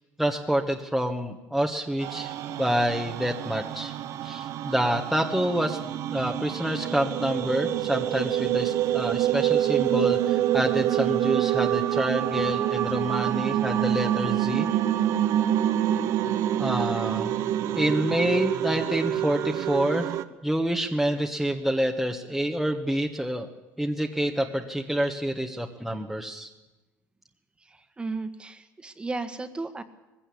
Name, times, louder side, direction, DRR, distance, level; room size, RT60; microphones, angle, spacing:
voice 1, 0.2-3.9 4.2-5.8 6.1-14.7 16.6-17.3 17.7-20.1 20.4-23.5 23.8-26.5, equal, ahead, 2 dB, 1.4 m, -27 dB
sound 1, 2.0-20.2, right 12 dB, 65° right, 1.0 m, -27 dB
voice 2, 27.7-29.8, right 3 dB, 15° right, 10 dB, 1.7 m, -35 dB
20.0 x 16.0 x 8.5 m, 1.1 s
cardioid pair, 115°, 6 cm